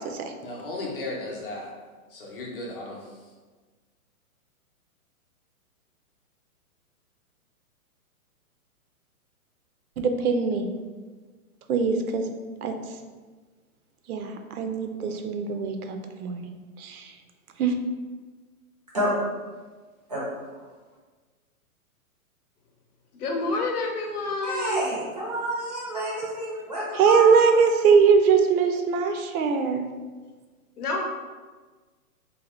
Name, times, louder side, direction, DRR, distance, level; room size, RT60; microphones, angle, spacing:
voice 1, 0.4-1.7 2.1-3.0, left 2 dB, 40° left, -2 dB, 0.6 m, -35 dB
voice 2, 10.0-10.7 11.7-12.2 12.6-12.7 14.1-16.5 16.8-17.1 17.6-17.7 26.9-29.8, right 5 dB, 80° right, 5 dB, 0.6 m, -21 dB
voice 3, 23.1-24.8 30.8-31.0, left 2 dB, 85° left, 2 dB, 0.8 m, -28 dB
voice 4, 24.4-27.7, right 1 dB, 30° right, -5 dB, 0.4 m, -29 dB
2.8 x 2.1 x 3.0 m, 1.4 s
hypercardioid pair, 165°, 44 cm